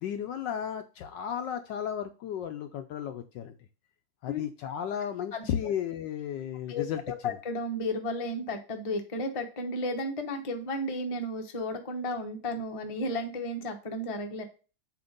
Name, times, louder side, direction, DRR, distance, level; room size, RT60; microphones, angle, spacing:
voice 1, 0.0-3.5 4.2-7.3, left 9 dB, 75° left, 8 dB, 1.1 m, -34 dB
voice 2, 5.3-5.7 6.7-14.4, left 1 dB, 40° left, 4 dB, 0.5 m, -33 dB
7.8 x 2.9 x 5.1 m, 0.35 s
omnidirectional pair, 2.3 m